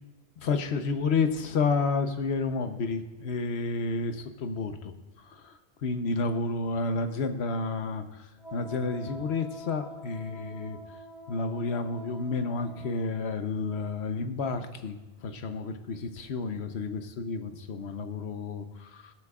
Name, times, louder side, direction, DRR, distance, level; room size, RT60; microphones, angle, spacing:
voice 1, 0.4-4.9 5.2-5.5 5.8-10.8 11.3-19.1, left 4 dB, 85° left, 8 dB, 1.1 m, -31 dB
Wind instrument woodwind instrument, 8.4-13.1, right 1 dB, 80° right, 2.5 m, -45 dB
21.5 x 8.9 x 2.4 m, 1.1 s
omnidirectional pair, 1.1 m